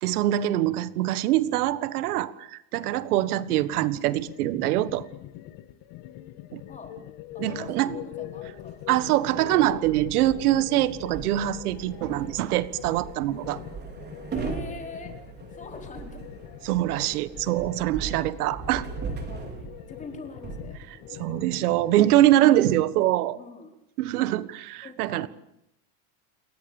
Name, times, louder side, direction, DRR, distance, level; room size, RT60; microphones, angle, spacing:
voice 1, 0.0-5.1 6.5-6.6 7.4-7.9 8.9-13.6 16.6-18.9 21.1-23.4 24.0-25.3, right 14 dB, 90° right, 15 dB, 1.7 m, -24 dB
sound 1, 3.5-22.8, left 14 dB, 45° left, 1.9 m, -43 dB
voice 2, 7.3-8.8 14.3-15.1 15.5-16.3 19.1-21.1 22.3-22.7 23.3-23.7 24.8-25.3, left 3 dB, 15° left, 4 dB, 4.6 m, -43 dB
sound 2, 8.5-21.5, right 5 dB, 25° right, 5.1 m, -39 dB
29.0 x 23.0 x 7.2 m, 0.82 s
supercardioid pair, 160°, 43 cm